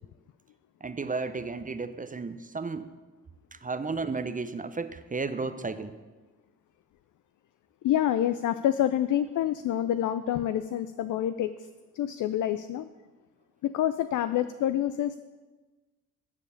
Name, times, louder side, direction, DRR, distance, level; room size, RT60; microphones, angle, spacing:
voice 1, 0.8-2.9 3.5-6.0, right 4 dB, 20° right, 10 dB, 0.7 m, -33 dB
voice 2, 7.8-11.5 11.9-12.9 13.6-15.2, left 11 dB, 50° left, 12 dB, 0.5 m, -27 dB
9.5 x 4.9 x 7.1 m, 1.3 s
hypercardioid pair, 50°, 40 cm